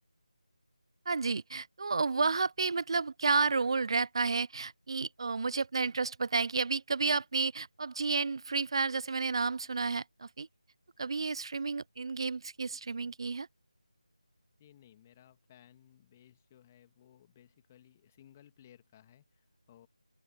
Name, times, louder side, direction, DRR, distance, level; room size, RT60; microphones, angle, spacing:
voice 1, 1.1-10.5 11.0-13.5, right 4 dB, 45° right, 0.6 m, -31 dB
voice 2, 14.6-19.9, left 11 dB, 20° left, 1.9 m, -60 dB
open air
figure-of-eight pair, 165°, 4 cm